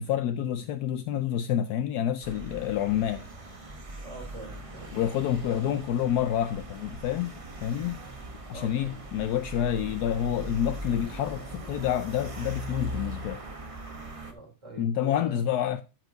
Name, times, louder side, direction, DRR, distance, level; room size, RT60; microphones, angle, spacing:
voice 1, 0.0-3.3 4.9-7.3 7.6-8.0 8.5-13.4 14.8-15.8, left 10 dB, 75° left, 0.9 m, -28 dB
sound 1, 2.2-14.3, right 1 dB, 30° right, 0.6 m, -40 dB
voice 2, 4.0-4.9 5.2-5.6 8.5-9.0 14.3-15.4, right 3 dB, 15° right, 3.5 m, -44 dB
12.5 x 4.6 x 3.9 m
omnidirectional pair, 2.2 m